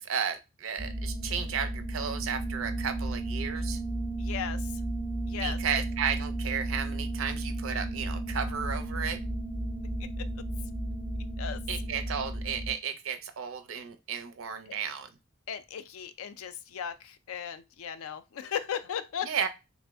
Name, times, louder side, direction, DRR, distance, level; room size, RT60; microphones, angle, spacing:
voice 1, 0.0-3.8 5.4-9.2 11.7-15.1 19.2-19.5, right 7 dB, 65° right, 0.5 m, -33 dB
sound 1, 0.8-12.7, right 1 dB, 5° right, 0.5 m, -33 dB
voice 2, 4.2-4.7 5.3-5.6 10.2-10.3 11.4-11.6 15.5-19.3, left 8 dB, 75° left, 0.4 m, -36 dB
3.4 x 2.0 x 3.4 m
head